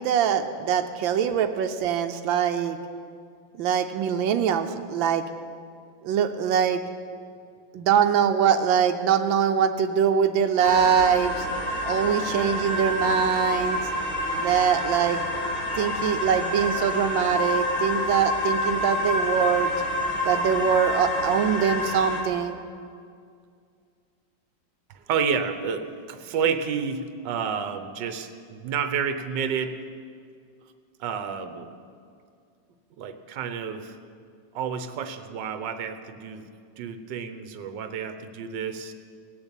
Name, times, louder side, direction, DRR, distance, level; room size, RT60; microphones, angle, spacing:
voice 1, 0.0-2.8 3.5-5.2 6.0-6.9 7.7-11.5 11.9-13.8 14.4-15.2 15.7-19.7 20.2-22.6, right 8 dB, 90° right, 7 dB, 1.4 m, -23 dB
sound 1, 10.6-22.2, left 1 dB, 55° left, 3.0 m, -28 dB
voice 2, 24.9-29.8 31.0-31.7 33.0-34.0 34.5-36.4 36.8-38.9, right 6 dB, 70° right, 8 dB, 1.5 m, -30 dB
19.0 x 6.9 x 8.2 m, 2.3 s
omnidirectional pair, 2.0 m